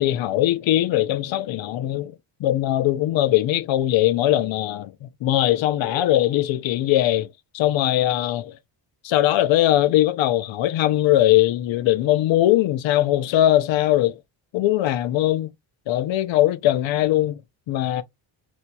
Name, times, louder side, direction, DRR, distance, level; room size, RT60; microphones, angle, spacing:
voice 1, 0.0-7.3 7.5-8.6 9.0-14.2 14.5-15.5 15.9-17.4 17.7-18.0, left 14 dB, 65° left, 0.6 m, -20 dB
4.4 x 2.7 x 2.3 m
cardioid pair, 155°, 48 cm